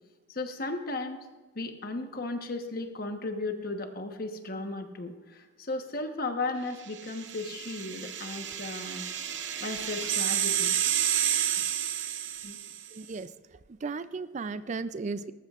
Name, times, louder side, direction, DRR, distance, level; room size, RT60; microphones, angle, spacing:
voice 1, 0.3-1.3 1.5-9.1 9.6-10.8 12.4-12.6, left 2 dB, 50° left, 5 dB, 1.1 m, -35 dB
sound 1, 7.0-12.9, right 11 dB, 65° right, 0.7 m, -30 dB
voice 2, 12.9-13.3 13.8-15.3, right 4 dB, 40° right, 13 dB, 0.4 m, -35 dB
19.0 x 14.0 x 2.5 m, 1.2 s
head